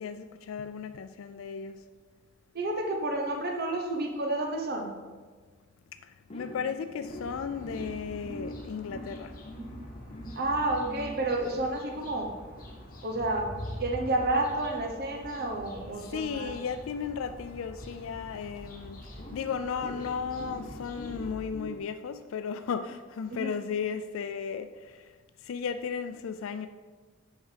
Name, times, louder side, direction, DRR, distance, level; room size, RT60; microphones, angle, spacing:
voice 1, 0.0-1.8 6.0-9.4 16.0-25.1 25.4-26.7, left 6 dB, 90° left, 0.4 m, -35 dB
voice 2, 2.5-4.9 10.3-12.3 13.0-13.5 13.8-16.5, right 2 dB, 50° right, 1.0 m, -30 dB
sound 1, 6.3-18.4 19.2-21.8, equal, 30° left, 0.9 m, -46 dB
sound 2, 7.1-21.5, equal, 45° left, 1.8 m, -45 dB
8.1 x 5.8 x 5.0 m
head